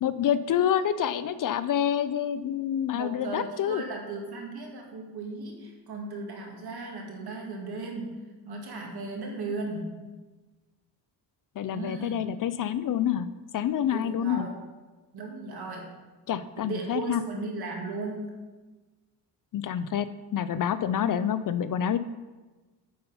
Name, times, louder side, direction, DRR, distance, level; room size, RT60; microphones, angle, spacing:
voice 1, 0.0-3.8 11.6-13.3 13.5-14.5 16.3-17.2 19.5-20.1 20.3-22.0, left 9 dB, 50° left, 14 dB, 0.4 m, -27 dB
voice 2, 2.9-8.2 8.5-9.9 11.7-12.2 13.9-14.6 15.1-15.9 16.6-18.4, right 3 dB, 60° right, 0 dB, 2.1 m, -36 dB
8.7 x 5.4 x 5.5 m, 1.2 s
cardioid pair, 115°, 42 cm